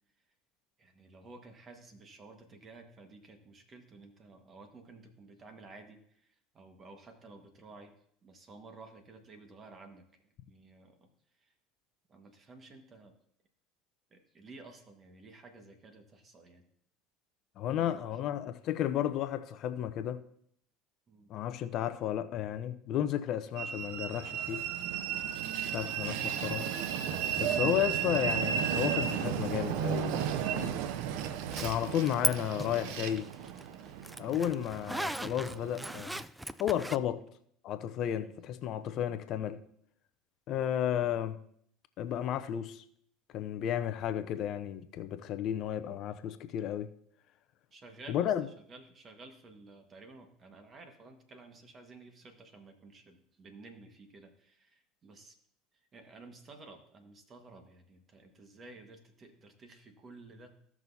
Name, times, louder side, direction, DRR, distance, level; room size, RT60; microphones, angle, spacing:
voice 1, 0.8-6.0 6.5-7.9 8.2-10.0 10.4-11.1 12.1-13.1 14.1-16.6 17.7-18.2 21.1-21.3 38.1-38.3 40.5-40.7 47.7-55.3 55.9-60.5, right 3 dB, 35° right, 1.5 m, -53 dB
voice 2, 17.6-20.2 21.3-24.6 25.7-26.7 27.4-30.8 31.6-33.3 34.2-36.2 36.6-37.2 37.6-39.6 40.5-41.4 42.0-42.8 43.3-46.9 48.1-48.5, left 10 dB, 55° left, 0.6 m, -33 dB
Train, 23.6-36.0, right 9 dB, 70° right, 0.6 m, -34 dB
Zipper (clothing), 31.5-32.3 32.6-37.0, right 1 dB, 5° right, 0.4 m, -37 dB
15.5 x 6.1 x 2.8 m
hypercardioid pair, 85°, 0 cm